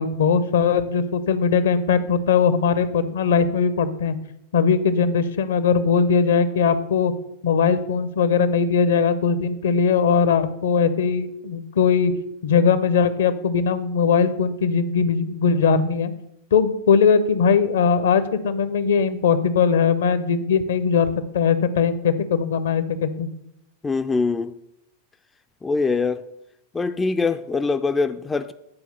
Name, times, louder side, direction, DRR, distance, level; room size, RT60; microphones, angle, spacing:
voice 1, 0.0-4.2 4.5-7.1 7.4-12.1 12.4-16.1 16.5-21.1 21.3-23.3, left 6 dB, 60° left, 0.7 m, -20 dB
voice 2, 23.8-24.5 25.6-26.2 26.7-28.5, left 4 dB, 15° left, 0.4 m, -23 dB
9.7 x 4.5 x 6.7 m
figure-of-eight pair, 90°, 0 cm